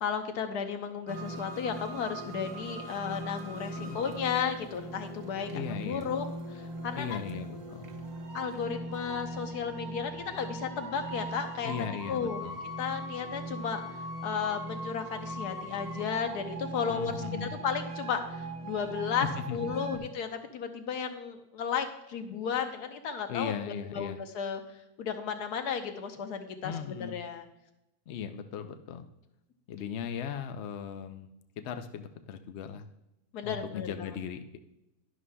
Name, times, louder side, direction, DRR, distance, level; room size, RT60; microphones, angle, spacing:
voice 1, 0.0-7.2 8.3-12.4 12.8-23.5 23.9-27.5 33.3-34.1, left 7 dB, 85° left, 7 dB, 1.4 m, -34 dB
sound 1, 1.1-20.0, right 1 dB, 35° right, 0.8 m, -40 dB
voice 2, 5.5-6.1 7.0-7.9 11.6-12.5 16.9-17.5 19.5-20.0 23.3-24.2 26.6-27.2 28.1-29.1 29.7-31.3 31.6-32.8 33.4-34.6, left 7 dB, 65° left, 7 dB, 0.7 m, -38 dB
11.0 x 11.0 x 2.2 m, 0.91 s
omnidirectional pair, 1.6 m